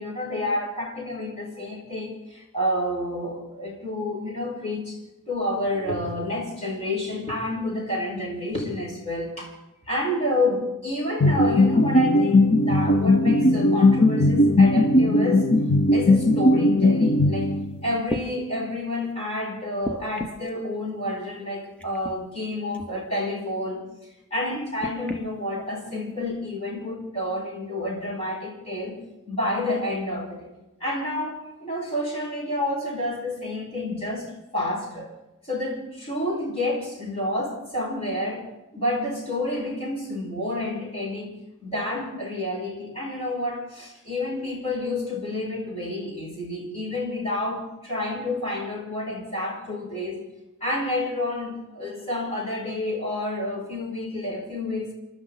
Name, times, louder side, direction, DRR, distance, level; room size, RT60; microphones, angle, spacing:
voice 1, 0.0-5.0 5.3-9.5 9.8-15.5 15.9-17.5 17.8-23.8 24.3-29.0 29.3-30.5 30.8-35.1 35.4-38.5 38.7-41.3 41.6-50.2 50.6-54.9, left 1 dB, 30° left, -1 dB, 5.2 m, -29 dB
sound 1, 11.2-17.9, left 2 dB, 50° left, 1.1 m, -18 dB
sound 2, 17.5-17.6 18.0-18.3 19.8-20.5 21.8-22.2 22.7-22.9 24.8-25.2 26.1-26.2, equal, 5° left, 1.1 m, -33 dB
28.5 x 12.5 x 4.1 m, 0.98 s
head